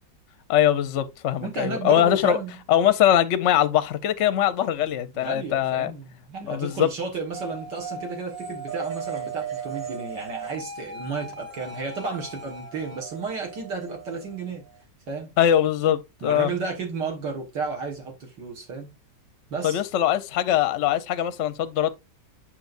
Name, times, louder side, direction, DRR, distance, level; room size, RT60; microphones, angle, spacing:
voice 1, 0.5-2.4 2.7-5.9 6.4-6.9 15.4-16.5 19.6-21.9, left 11 dB, 60° left, 0.8 m, -22 dB
voice 2, 1.4-2.5 5.1-14.6 15.1-15.4 16.2-18.9 19.5-19.8, right 4 dB, 70° right, 2.1 m, -32 dB
sound 1, 7.3-14.8, right 5 dB, 30° right, 1.3 m, -37 dB
8.5 x 6.0 x 2.5 m
omnidirectional pair, 2.0 m